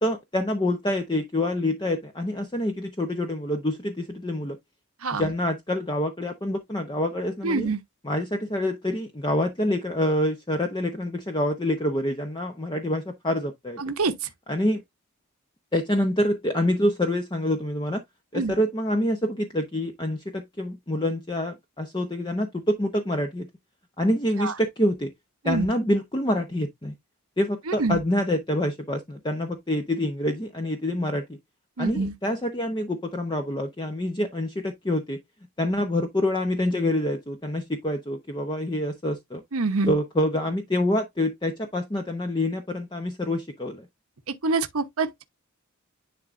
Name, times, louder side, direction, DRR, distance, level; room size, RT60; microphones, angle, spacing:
voice 1, 0.0-4.6 5.1-7.7 8.0-13.8 14.5-14.8 15.7-18.0 18.3-23.5 24.0-25.1 25.4-26.9 27.4-31.4 31.8-35.2 35.6-39.4 39.9-43.9, left 1 dB, 20° left, 0.8 m, -26 dB
voice 2, 7.4-7.8 13.8-14.1 18.3-18.5 24.4-24.5 25.4-25.7 27.7-28.0 31.8-32.1 39.5-39.9 44.3-45.2, right 3 dB, 70° right, 1.0 m, -26 dB
10.5 x 3.7 x 2.5 m
head